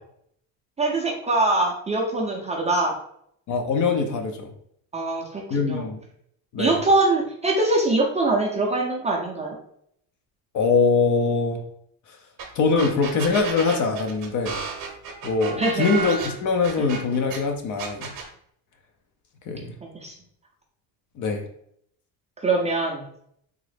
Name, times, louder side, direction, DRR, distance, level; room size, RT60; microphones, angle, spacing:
voice 1, 0.8-3.0 4.9-5.9 6.6-9.6 15.6-15.9 19.9-20.1 22.4-23.1, right 2 dB, 15° right, -1 dB, 0.4 m, -23 dB
voice 2, 3.5-4.5 5.5-6.0 6.5-6.7 10.5-11.6 12.6-14.6 15.2-18.1 19.5-19.7 21.2-21.4, left 4 dB, 45° left, 4 dB, 0.6 m, -23 dB
sound 1, 12.4-12.5 12.8-17.4 17.8-18.3, right 5 dB, 50° right, 0.8 m, -32 dB
3.6 x 2.0 x 3.2 m, 0.69 s
cardioid pair, 135°, 41 cm